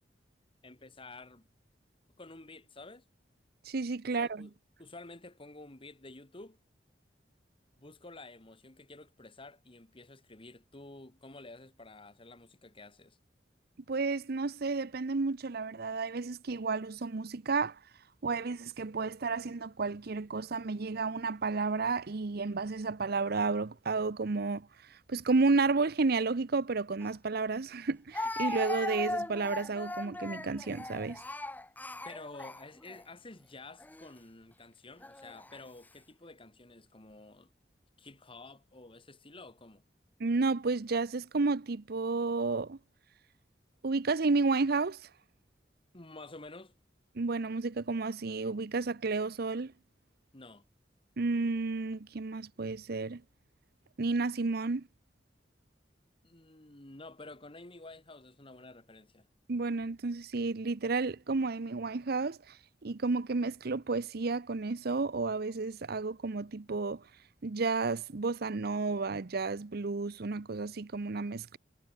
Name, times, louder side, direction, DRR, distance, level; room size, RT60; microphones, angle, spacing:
voice 1, 0.6-1.5 2.2-3.0 4.2-4.5 4.8-6.6 7.8-13.2 32.0-37.5 38.0-39.8 45.9-46.8 50.3-50.6 56.2-59.3, left 2 dB, 30° left, 2.2 m, -50 dB
voice 2, 3.6-4.5 13.9-17.8 18.2-31.2 40.2-42.8 43.8-45.1 47.1-49.7 51.2-53.2 54.0-54.9 59.5-62.6 62.8-67.0 67.4-71.6, right 3 dB, 60° right, 0.7 m, -31 dB
Speech, 27.0-27.1 28.1-33.0 33.8-34.1 35.0-35.6, left 2 dB, 10° left, 1.0 m, -38 dB
head